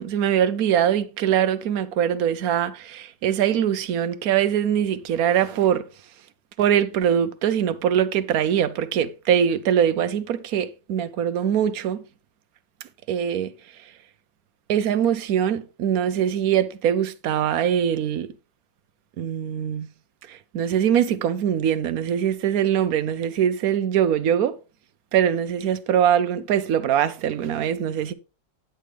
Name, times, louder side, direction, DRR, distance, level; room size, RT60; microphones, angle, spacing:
voice 1, 0.0-5.8 6.6-12.0 13.1-13.5 14.7-18.3 19.2-19.9 20.3-24.5 25.1-28.1, right 9 dB, 65° right, 1.0 m, -22 dB
10.0 x 7.9 x 3.3 m
omnidirectional pair, 1.9 m